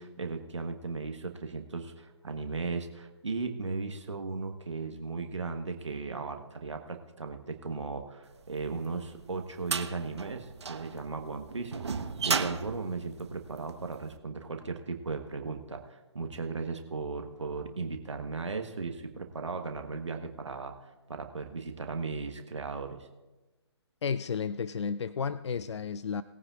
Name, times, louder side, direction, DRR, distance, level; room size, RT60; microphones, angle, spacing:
voice 1, 0.0-11.7 12.2-23.1, right 4 dB, 85° right, 5 dB, 1.3 m, -36 dB
sound 1, 8.6-14.0, right 5 dB, 70° right, 1.1 m, -34 dB
voice 2, 24.0-26.2, left 6 dB, 75° left, 15 dB, 0.4 m, -32 dB
20.5 x 9.7 x 2.5 m, 1.1 s
figure-of-eight pair, 145°, 15 cm